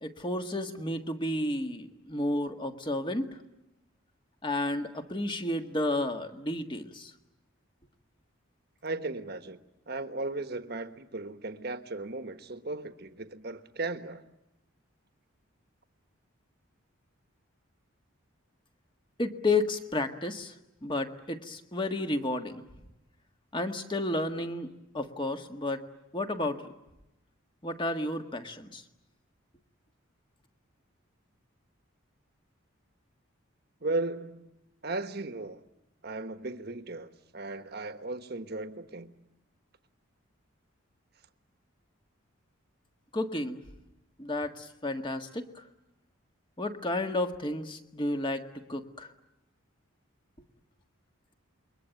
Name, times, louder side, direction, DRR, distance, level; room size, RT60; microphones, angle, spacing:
voice 1, 0.0-3.4 4.4-7.1 19.2-20.5 20.8-22.6 23.5-25.8 26.1-26.6 27.6-28.8 43.1-43.6 44.2-45.6 46.6-48.4 48.7-49.1, left 2 dB, 25° left, 1.6 m, -32 dB
voice 2, 8.8-9.6 9.9-14.2 33.8-34.5 34.8-35.6 36.0-39.1, right 2 dB, 50° right, 1.4 m, -36 dB
28.5 x 23.0 x 9.2 m
head